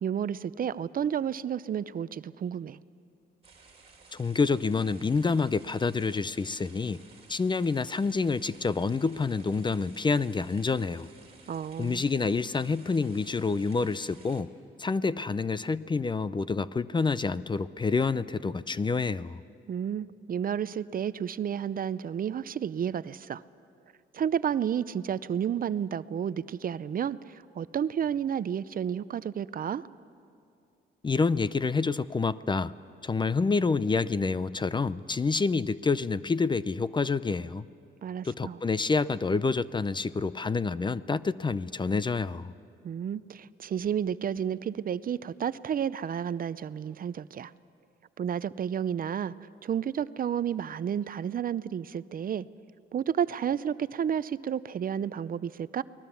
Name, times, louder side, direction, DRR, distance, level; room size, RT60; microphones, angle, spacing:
voice 1, 0.0-2.8 11.5-12.0 19.7-23.4 24.1-29.8 38.0-38.6 42.8-47.5 48.2-49.3 49.6-52.5 52.9-55.8, right 8 dB, 45° right, 16 dB, 0.6 m, -31 dB
sound 1, 3.4-14.4, right 4 dB, 30° right, 3.3 m, -55 dB
voice 2, 4.1-7.0 7.3-11.1 11.8-14.5 14.8-19.4 31.0-32.7 33.0-37.6 38.2-42.5, left 4 dB, 25° left, 17 dB, 0.5 m, -28 dB
29.5 x 20.0 x 7.1 m, 2.5 s
cardioid pair, 90°, 20 cm